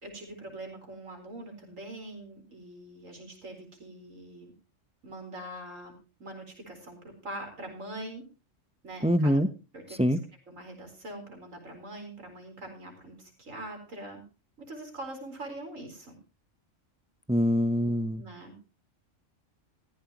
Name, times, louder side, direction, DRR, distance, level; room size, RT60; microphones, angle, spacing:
voice 1, 0.0-4.5 5.0-5.9 6.2-8.2 8.8-9.3 9.7-10.2 10.5-14.2 14.6-16.2 18.2-18.5, right 1 dB, 75° right, 3 dB, 4.7 m, -43 dB
voice 2, 9.0-9.5 10.0-10.2 17.3-18.2, equal, 5° right, 11 dB, 0.6 m, -24 dB
15.5 x 14.5 x 2.9 m, 0.32 s
omnidirectional pair, 1.4 m